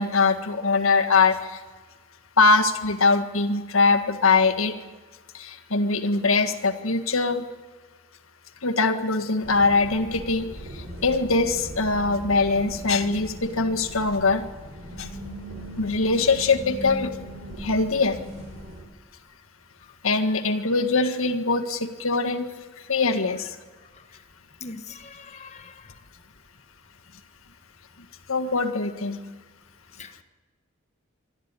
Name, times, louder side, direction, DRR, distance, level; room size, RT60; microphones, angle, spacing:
voice 1, 0.0-1.6 2.4-4.7 5.3-7.4 8.6-14.4 15.0-15.1 15.8-17.1 17.6-18.2 20.0-22.5 22.9-23.6 28.3-29.2, left 3 dB, 85° left, 6 dB, 1.8 m, -22 dB
sound 1, 9.4-18.8, equal, 85° right, 6.1 m, -39 dB
voice 2, 24.6-25.8 30.0-30.2, left 4 dB, 35° left, 9 dB, 1.3 m, -41 dB
25.5 x 12.5 x 9.9 m, 1.4 s
head